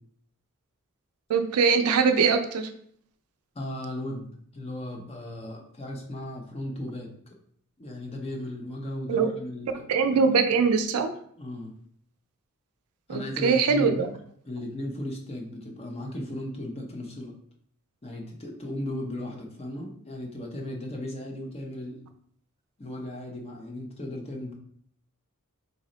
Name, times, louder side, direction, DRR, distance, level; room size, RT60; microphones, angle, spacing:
voice 1, 1.3-2.7 9.1-9.3 9.9-11.1 13.1-14.1, right 5 dB, 80° right, 7 dB, 0.4 m, -22 dB
voice 2, 3.5-4.3 4.5-7.1 7.8-9.8 11.4-11.7 13.1-14.0 14.5-17.3 18.0-22.0 22.8-24.5, left 1 dB, 25° left, 1 dB, 0.6 m, -36 dB
4.0 x 2.1 x 3.8 m, 0.63 s
head